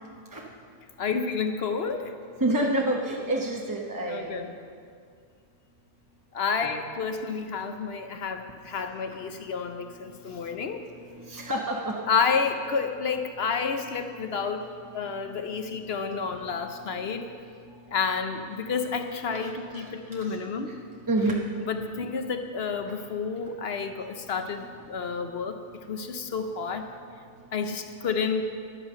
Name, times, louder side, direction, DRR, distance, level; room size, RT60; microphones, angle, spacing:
voice 1, 1.0-2.1 4.1-4.5 6.3-10.8 12.1-17.3 17.9-20.7 21.2-25.6 25.9-26.9 27.5-28.4, left 5 dB, 55° left, 7 dB, 0.8 m, -30 dB
voice 2, 2.4-4.5 6.6-6.7 11.2-11.9 19.3-19.4 19.7-19.9 20.2-20.4 20.7-20.8 21.1-21.4, right 1 dB, 20° right, -2 dB, 0.7 m, -28 dB
11.0 x 8.9 x 6.6 m, 2.2 s
omnidirectional pair, 1.5 m